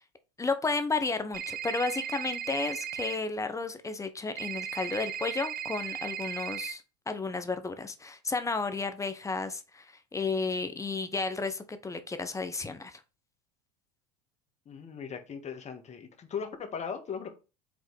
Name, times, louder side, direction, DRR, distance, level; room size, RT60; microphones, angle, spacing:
voice 1, 0.4-13.0, left 3 dB, 15° left, 1.0 m, -32 dB
sound 1, 1.3-3.1 4.4-6.7, right 9 dB, 45° right, 1.1 m, -36 dB
voice 2, 14.6-17.3, left 6 dB, 30° left, 1.6 m, -38 dB
5.3 x 3.7 x 4.9 m
hypercardioid pair, 90°, 21 cm